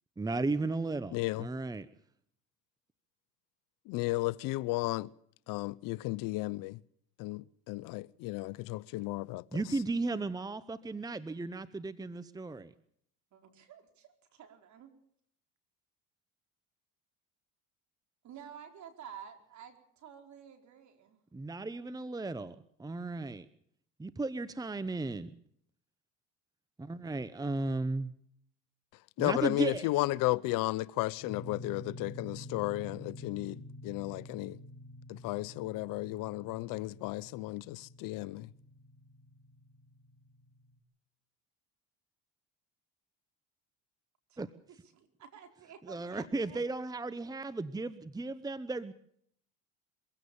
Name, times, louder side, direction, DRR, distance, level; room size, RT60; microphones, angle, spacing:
voice 1, 0.2-1.9 9.5-12.7 21.3-23.5 24.0-25.3 26.8-28.1 29.2-29.8 44.4-44.5 45.8-48.9, right 3 dB, 10° right, 0.9 m, -35 dB
voice 2, 1.1-1.5 3.9-5.1 5.5-6.8 7.2-9.6 29.2-34.6 35.1-38.5, left 19 dB, 70° left, 0.8 m, -34 dB
voice 3, 13.3-14.9 18.2-21.2 44.3-44.4 44.7-46.6, right 8 dB, 55° right, 4.6 m, -51 dB
sound 1, 31.2-40.8, left 2 dB, 30° left, 3.5 m, -49 dB
24.0 x 16.5 x 7.0 m
supercardioid pair, 95°, 34 cm